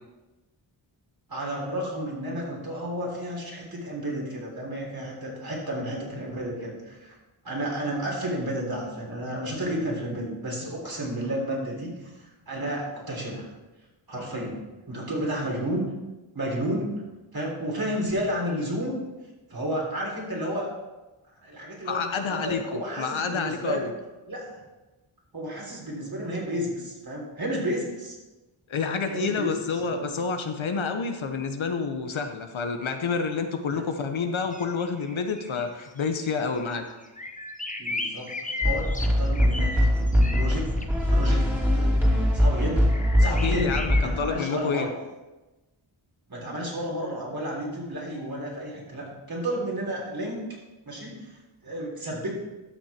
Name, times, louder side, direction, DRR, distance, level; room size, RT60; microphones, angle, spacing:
voice 1, 1.3-7.2 7.4-13.5 14.1-15.9 16.3-16.9 17.3-19.0 19.5-20.7 21.4-23.9 24.3-24.6 25.3-28.2 29.1-30.1 33.7-33.8 37.8-41.5 41.7-42.9 43.2-44.9 46.3-50.5 50.9-52.3, equal, 45° right, -2 dB, 3.7 m, -32 dB
voice 2, 21.8-23.9 28.7-36.9 43.2-44.9, left 5 dB, 70° left, 6 dB, 1.1 m, -29 dB
sound 1, 34.5-35.6 36.0-36.1 36.5-36.8 37.0-40.9 42.0-42.1 42.9-44.0, left 3 dB, 15° left, 1.0 m, -34 dB
sound 2, 38.6-44.2, equal, 5° right, 2.8 m, -22 dB
12.5 x 6.3 x 4.4 m, 1.1 s
cardioid pair, 60°, 49 cm